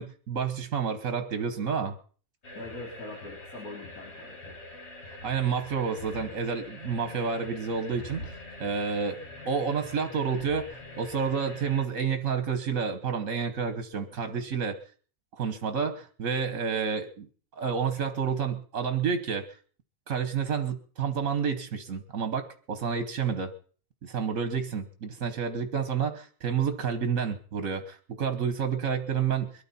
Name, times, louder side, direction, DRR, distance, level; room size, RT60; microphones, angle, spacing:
voice 1, 0.0-2.0 5.2-9.2 9.4-10.7 11.0-14.8 15.3-17.3 17.6-19.5 20.1-23.5 24.0-29.6, right 6 dB, 70° right, 8 dB, 1.6 m, -29 dB
sound 1, 2.4-11.9, left 2 dB, 55° left, 2.0 m, -44 dB
voice 2, 2.5-4.6, left 2 dB, 90° left, -2 dB, 4.2 m, -42 dB
22.5 x 13.5 x 4.3 m, 0.42 s
omnidirectional pair, 1.4 m